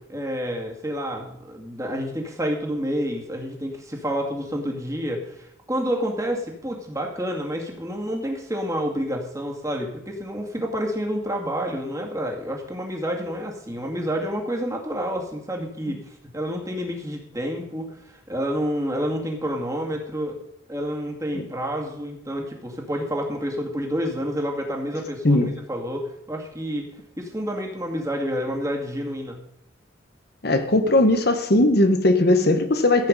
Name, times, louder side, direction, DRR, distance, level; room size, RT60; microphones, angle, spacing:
voice 1, 0.1-20.4 20.7-26.9 27.2-29.4, equal, 15° right, 1 dB, 2.2 m, -29 dB
voice 2, 30.4-33.1, left 2 dB, 55° left, 8 dB, 1.1 m, -19 dB
15.0 x 8.5 x 5.3 m, 0.73 s
head